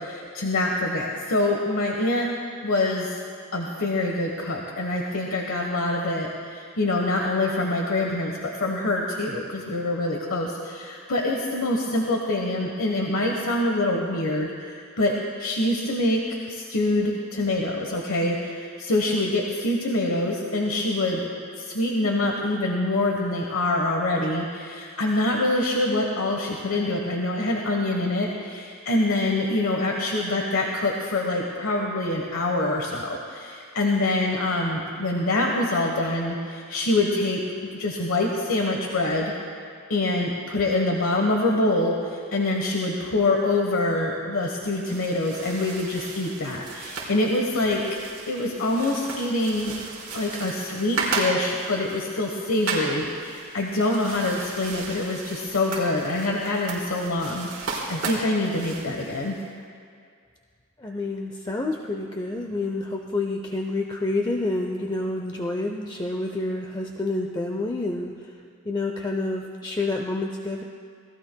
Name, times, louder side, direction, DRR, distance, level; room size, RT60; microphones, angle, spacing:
voice 1, 0.0-2.3 2.6-3.1 3.5-16.2 16.5-21.3 21.6-37.4 37.7-39.3 39.9-47.8 48.3-49.7 50.1-57.5 57.9-59.4, left 2 dB, 75° left, 0 dB, 1.2 m, -25 dB
sound 1, 44.6-59.5, right 3 dB, 60° right, 4.1 m, -35 dB
voice 2, 60.8-68.3 68.6-70.6, left 2 dB, 20° left, 2 dB, 0.6 m, -28 dB
27.5 x 18.0 x 2.3 m, 2.2 s
head